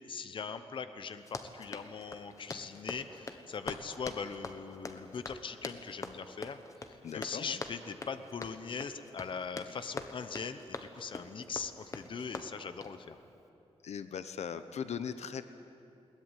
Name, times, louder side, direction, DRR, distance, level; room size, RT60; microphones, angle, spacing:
voice 1, 0.1-6.6 7.1-13.2, left 5 dB, 50° left, 10 dB, 0.9 m, -41 dB
Run, 1.2-13.0, left 3 dB, 30° left, 1.2 m, -44 dB
voice 2, 7.0-7.6 13.8-15.4, left 7 dB, 75° left, 11 dB, 0.9 m, -39 dB
21.5 x 19.5 x 9.1 m, 2.8 s
wide cardioid pair, 165°, 11 cm